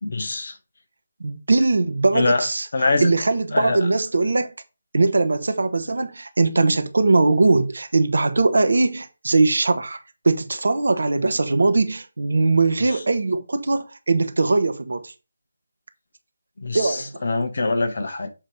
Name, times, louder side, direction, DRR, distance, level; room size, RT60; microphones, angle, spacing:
voice 1, 0.0-0.6 2.1-2.5 2.7-3.1 3.5-3.8 16.6-18.3, left 3 dB, 55° left, 1.4 m, -23 dB
voice 2, 1.2-2.7 3.0-4.5 4.9-10.0 10.2-15.1 16.7-17.1, right 3 dB, 65° right, 1.1 m, -20 dB
7.3 x 3.4 x 5.2 m
figure-of-eight pair, 155°, 0 cm